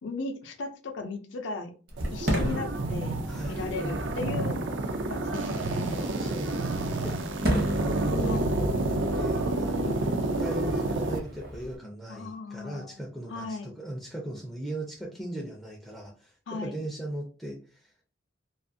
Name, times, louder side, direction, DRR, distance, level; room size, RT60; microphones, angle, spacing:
voice 1, 0.0-1.7 2.1-3.2 3.4-4.6 5.1-6.0 8.2-8.5 9.7-10.1 12.1-13.0 13.3-13.7 16.5-16.8, left 3 dB, 75° left, 5 dB, 0.5 m, -37 dB
Fireworks, 1.9-11.8, equal, 50° right, 0.8 m, -35 dB
sound 1, 2.0-11.2, right 2 dB, 70° right, 0.4 m, -29 dB
voice 2, 3.3-4.3 5.9-17.9, right 1 dB, ahead, -3 dB, 0.4 m, -38 dB
2.4 x 2.4 x 2.5 m, 0.37 s
head